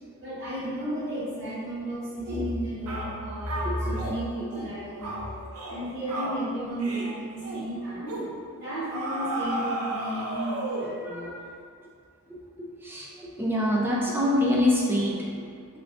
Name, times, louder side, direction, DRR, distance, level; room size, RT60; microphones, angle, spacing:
voice 1, 0.2-5.4 5.7-8.1 8.5-11.3, right 1 dB, 50° right, -11 dB, 1.1 m, -33 dB
sound 1, 2.3-2.5 2.9-3.1 3.5-4.2 4.5-4.7 5.0-5.2 5.5-5.8 6.1-6.4 6.8-7.1 7.4-7.6 8.1-8.3 8.9-11.0, right 1 dB, 85° right, 0.5 m, -33 dB
voice 2, 11.0-11.4 12.3-15.2, left 1 dB, 10° right, -4 dB, 0.3 m, -26 dB
2.6 x 2.5 x 3.4 m, 2.3 s
head